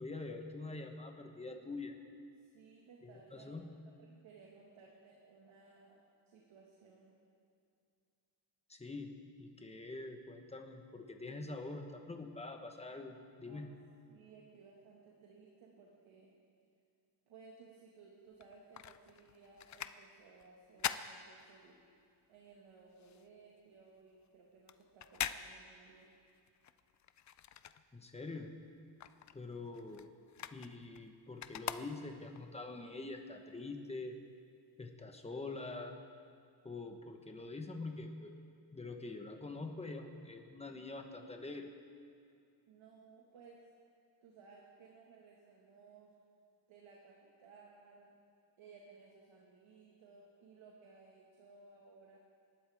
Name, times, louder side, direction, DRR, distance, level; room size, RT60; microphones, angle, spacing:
voice 1, 0.0-2.0 3.0-3.7 8.7-9.1 9.4-13.7 27.9-28.5 29.3-30.1 30.5-34.2 34.8-36.0 36.6-38.3 38.7-41.7, left 3 dB, 15° left, 4 dB, 1.2 m, -45 dB
voice 2, 2.4-3.7 4.0-7.2 13.4-13.7 14.1-16.3 17.3-21.8 22.3-26.2 42.7-43.7 44.2-46.1 46.7-48.2 48.6-52.2, right 4 dB, 75° right, -2 dB, 2.0 m, -60 dB
sound 1, 18.3-22.0 22.4-28.3 28.6-32.4 33.0-33.1, left 9 dB, 40° left, 0.4 m, -44 dB
27.0 x 12.5 x 3.6 m, 2.4 s
cardioid pair, 145°, 49 cm